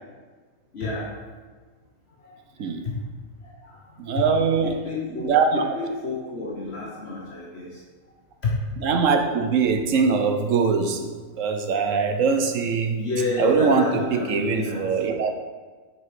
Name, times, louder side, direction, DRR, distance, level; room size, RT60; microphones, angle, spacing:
voice 1, 0.7-1.1 2.2-3.0 3.4-4.2 4.6-7.8 8.4-8.6 12.1-12.2 12.9-15.2, left 3 dB, 55° left, -5 dB, 1.4 m, -31 dB
voice 2, 4.0-4.8 5.2-5.6 8.8-11.1 11.4-13.0 13.4-15.3, right 5 dB, 85° right, 5 dB, 1.2 m, -22 dB
7.9 x 5.3 x 4.9 m, 1.4 s
omnidirectional pair, 1.3 m